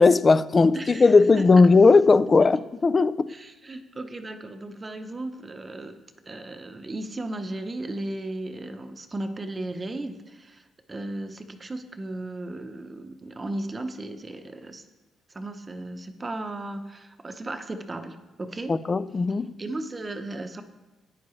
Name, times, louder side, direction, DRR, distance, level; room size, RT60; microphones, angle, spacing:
voice 1, 0.0-3.3 18.7-19.5, left 4 dB, 30° left, 0.4 m, -18 dB
voice 2, 0.7-1.1 3.3-6.0 6.3-14.8 15.3-18.7 19.6-20.6, right 2 dB, 25° right, 0.8 m, -35 dB
11.5 x 9.4 x 3.2 m
cardioid pair, 90°, 0 cm